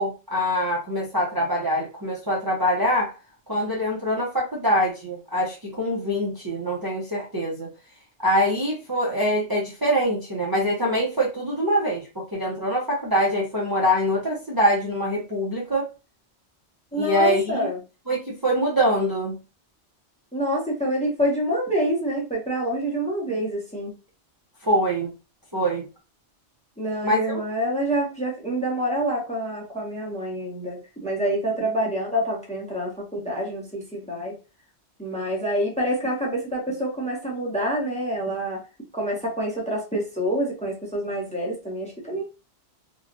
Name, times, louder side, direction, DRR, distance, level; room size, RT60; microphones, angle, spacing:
voice 1, 0.0-3.1 3.5-7.7 8.2-15.9 16.9-17.7 18.1-19.4 24.6-25.1 25.5-25.9 27.0-27.4, equal, 25° right, -3 dB, 0.6 m, -24 dB
voice 2, 16.9-17.8 20.3-23.9 26.8-34.3 35.0-38.6 38.9-42.2, right 1 dB, 5° left, -2 dB, 0.7 m, -27 dB
3.0 x 2.3 x 2.5 m, 0.30 s
omnidirectional pair, 1.2 m